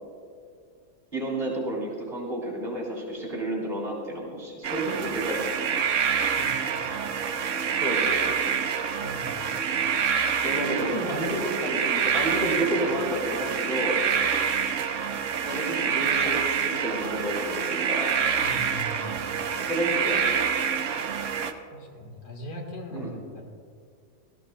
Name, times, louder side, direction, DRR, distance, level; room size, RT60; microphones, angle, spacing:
voice 1, 1.1-5.7 7.8-8.5 10.4-14.0 15.4-18.2 19.6-20.4 20.8-21.0 22.9-23.1, right 1 dB, 30° right, -5 dB, 3.3 m, -31 dB
sound 1, 4.6-21.5, right 7 dB, 60° right, 0.9 m, -27 dB
voice 2, 6.4-6.9 9.0-9.4 10.8-11.2 18.4-19.0 21.7-23.4, left 1 dB, 80° left, 1 dB, 2.1 m, -39 dB
18.5 x 14.5 x 2.3 m, 2.2 s
omnidirectional pair, 1.7 m